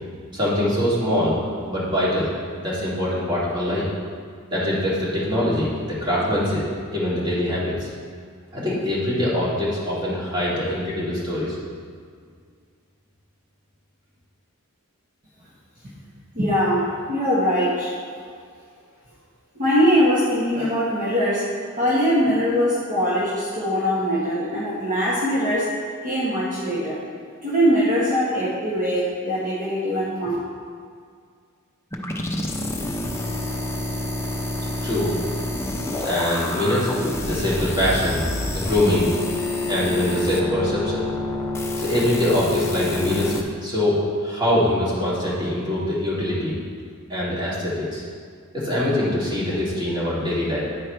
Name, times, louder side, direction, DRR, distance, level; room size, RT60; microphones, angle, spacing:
voice 1, 0.3-1.3 1.6-2.3 2.6-3.9 4.5-6.6 6.9-7.9 8.5-11.6 34.8-35.1 36.0-36.9 37.2-38.3 38.5-39.1 39.7-41.1 41.8-43.3 43.6-46.5 47.1-48.0 48.5-50.6, left 1 dB, 20° right, -8 dB, 2.2 m, -23 dB
voice 2, 16.3-18.0 19.5-21.5 21.8-25.7 26.0-27.0 27.4-30.3, equal, 40° right, -9 dB, 1.4 m, -22 dB
sound 1, 31.9-43.4, left 2 dB, 10° left, 0.6 m, -27 dB
9.9 x 4.6 x 4.5 m, 2.1 s
head